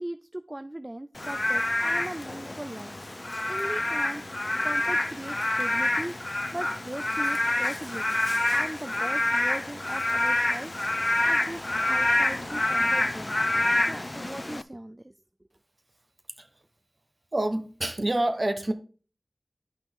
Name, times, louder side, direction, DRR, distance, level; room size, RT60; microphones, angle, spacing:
voice 1, 0.0-2.9 3.5-4.3 4.6-8.2 8.5-13.4 13.9-15.2, right 1 dB, 30° right, 0.4 m, -39 dB
Frog / Rain, 1.2-14.6, left 1 dB, 40° left, 0.5 m, -27 dB
voice 2, 17.3-18.7, right 1 dB, 45° right, 1.1 m, -27 dB
10.5 x 5.7 x 3.7 m
wide cardioid pair, 45°, 0 cm